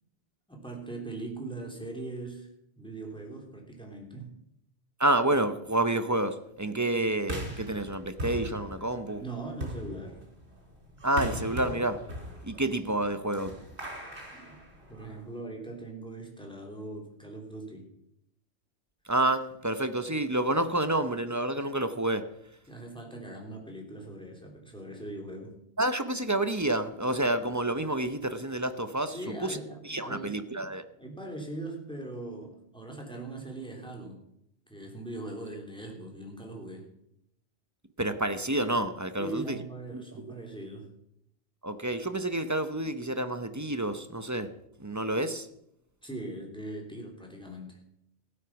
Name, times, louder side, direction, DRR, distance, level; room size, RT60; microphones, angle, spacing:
voice 1, 0.5-2.5 2.8-4.3 9.2-10.2 14.3-14.6 14.9-17.9 22.7-25.5 29.1-30.4 31.0-34.2 34.7-36.9 39.2-40.9 46.0-47.8, right 2 dB, 5° left, 3.1 m, -40 dB
voice 2, 5.0-9.2 11.0-12.0 12.4-13.6 19.1-22.3 25.8-29.6 29.8-30.8 38.0-39.6 39.9-40.3 41.6-44.5 44.8-45.5, right 1 dB, 20° right, 0.7 m, -29 dB
sound 1, 7.3-15.3, equal, 85° right, 4.6 m, -40 dB
16.0 x 9.1 x 5.9 m
omnidirectional pair, 1.1 m